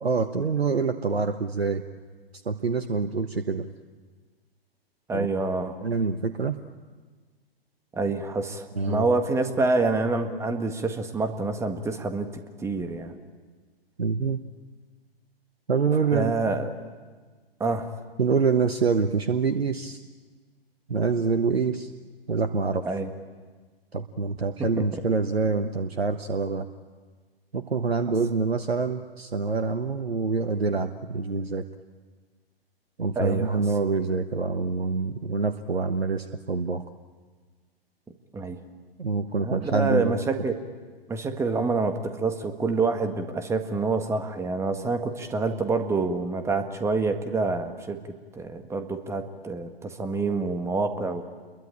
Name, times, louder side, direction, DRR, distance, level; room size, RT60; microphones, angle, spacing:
voice 1, 0.0-1.8 2.4-3.7 5.1-5.3 5.8-6.6 8.8-9.1 14.0-14.4 15.7-16.3 18.2-20.0 20.9-21.9 22.3-22.9 23.9-26.7 27.5-31.6 33.0-36.8 39.0-40.2, right 4 dB, 80° right, 9 dB, 1.2 m, -26 dB
voice 2, 5.1-5.8 7.9-12.3 12.6-13.1 16.1-16.7 17.6-17.9 22.8-23.1 24.6-24.8 33.2-33.6 38.3-38.6 39.4-40.6 41.1-48.0 48.3-51.3, right 3 dB, 10° right, 7 dB, 1.7 m, -27 dB
29.0 x 22.5 x 8.7 m, 1.4 s
figure-of-eight pair, 120°, 31 cm